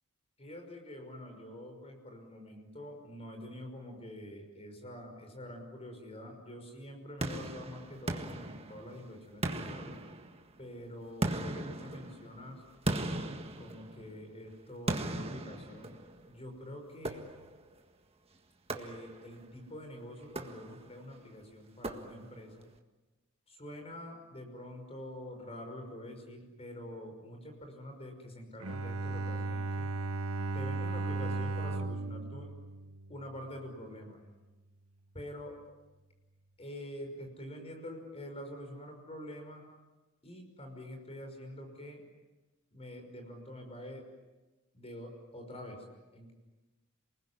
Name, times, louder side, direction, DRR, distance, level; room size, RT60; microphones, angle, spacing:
voice 1, 0.4-10.0 10.6-12.6 13.6-15.9 16.3-17.3 18.7-22.7 23.5-29.9 30.5-32.5 33.1-34.2 35.1-35.6 36.6-39.6 40.2-42.0 42.7-44.1 44.7-45.8 46.1-46.3, left 1 dB, 30° left, 5 dB, 5.7 m, -46 dB
sound 1, 7.2-9.0 9.4-10.6 11.2-14.2 14.9-16.3 17.0-17.7 18.7-19.4 20.2-21.0 21.8-22.5, right 1 dB, 30° right, 1.7 m, -38 dB
Bowed string instrument, 28.6-33.6, right 2 dB, 85° right, 1.2 m, -36 dB
28.0 x 21.0 x 9.8 m, 1.1 s
head